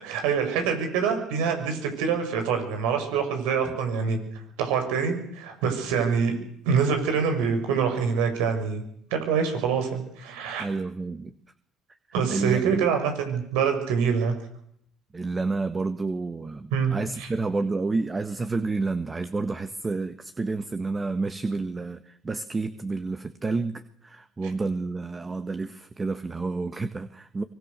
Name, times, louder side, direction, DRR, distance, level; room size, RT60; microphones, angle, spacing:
voice 1, 0.0-4.2 4.6-6.4 6.6-8.8 9.1-10.7 12.1-14.3 16.7-17.3, right 6 dB, 85° right, 6 dB, 6.2 m, -25 dB
voice 2, 10.6-11.3 12.3-12.9 15.1-27.4, right 3 dB, 25° right, 10 dB, 1.6 m, -30 dB
24.5 x 23.5 x 6.9 m, 0.68 s
supercardioid pair, 70°, 0 cm